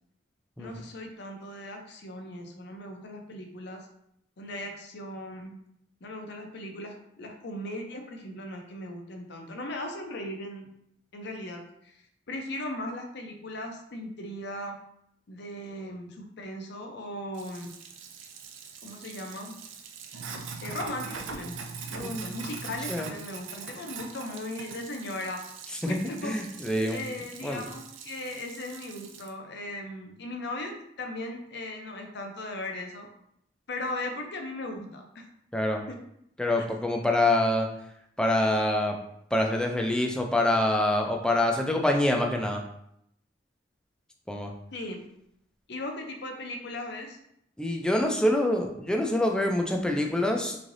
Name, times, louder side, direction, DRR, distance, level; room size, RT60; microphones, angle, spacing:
voice 1, 0.6-3.9 4.4-5.6 6.0-10.7 11.1-12.0 12.3-14.8 15.3-17.7 18.8-19.5 20.6-21.6 21.9-25.4 25.8-26.3 26.9-33.1 33.7-35.2 35.9-36.0 44.7-45.0 45.7-47.2, left 1 dB, 60° left, 3 dB, 0.6 m, -38 dB
Sink (filling or washing), 17.3-29.3, right 5 dB, 80° right, 0.4 m, -42 dB
voice 2, 26.2-27.0 27.4-27.6 35.5-35.8 36.4-37.7 38.2-39.0 39.3-42.6 44.3-44.5 47.6-50.6, left 1 dB, 5° left, 2 dB, 0.4 m, -25 dB
3.6 x 3.2 x 2.6 m, 0.74 s
head